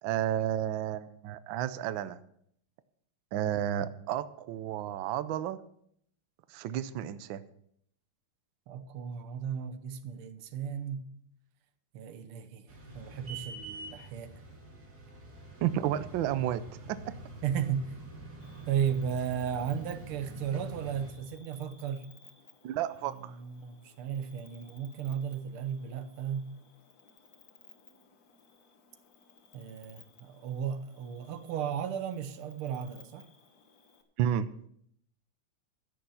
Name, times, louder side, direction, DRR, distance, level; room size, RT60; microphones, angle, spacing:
voice 1, 0.0-2.2 3.3-5.6 6.5-7.4 15.6-17.2 22.6-23.4 34.2-34.5, right 11 dB, 75° right, 1.3 m, -32 dB
voice 2, 8.7-11.1 11.9-12.7 12.9-14.3 17.4-17.9 18.7-22.1 23.4-26.5 29.5-33.3, right 8 dB, 90° right, 1.8 m, -35 dB
sound 1, 12.7-21.1, right 2 dB, 45° right, 2.8 m, -46 dB
Cricket, 18.4-34.0, left 5 dB, 50° left, 1.7 m, -60 dB
15.5 x 6.6 x 5.6 m
omnidirectional pair, 2.3 m